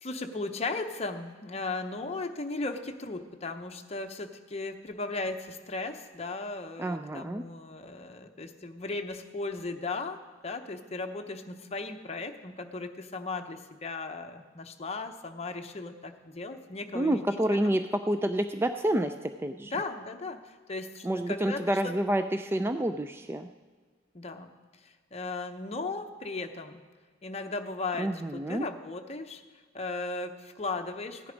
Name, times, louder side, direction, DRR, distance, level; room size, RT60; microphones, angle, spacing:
voice 1, 0.0-17.4 17.6-17.8 19.6-21.9 24.1-24.5 24.8-26.8 27.2-29.4 29.7-31.3, left 3 dB, 35° left, 5 dB, 0.8 m, -36 dB
voice 2, 6.8-7.4 16.9-19.7 21.0-23.5 28.0-28.7, right 1 dB, 15° right, 8 dB, 0.3 m, -28 dB
16.0 x 10.0 x 5.2 m, 1.5 s
head